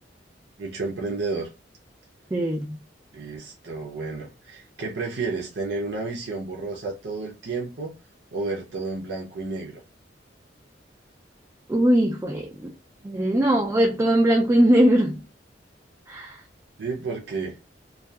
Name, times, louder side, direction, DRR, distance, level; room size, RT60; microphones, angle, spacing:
voice 1, 0.6-1.5 3.1-7.9 8.3-9.8 16.8-17.6, right 3 dB, 70° right, 0.6 m, -31 dB
voice 2, 2.3-2.8 11.7-12.7 13.0-15.2 16.1-16.4, right 1 dB, 15° right, 0.3 m, -20 dB
2.6 x 2.3 x 2.2 m
head